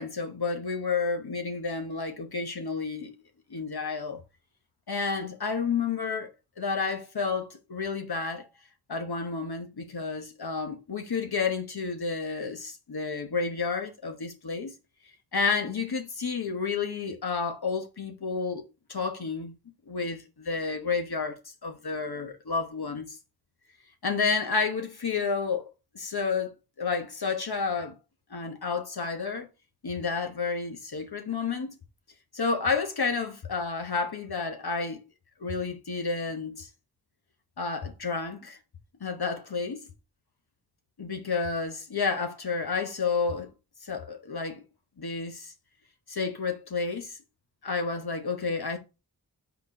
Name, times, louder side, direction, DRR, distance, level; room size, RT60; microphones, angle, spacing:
voice 1, 0.0-3.1 3.5-4.2 4.9-6.3 6.6-8.5 8.9-14.7 15.3-18.6 18.9-19.5 19.9-23.2 24.0-28.0 28.3-29.5 29.8-31.7 32.3-35.0 35.4-36.7 37.6-38.6 39.0-39.8 41.0-43.5 43.8-44.6 45.0-45.5 46.1-47.2 47.6-48.8, left 4 dB, 65° left, 1.1 m, -30 dB
4.5 x 4.1 x 5.4 m
wide cardioid pair, 50°, 40 cm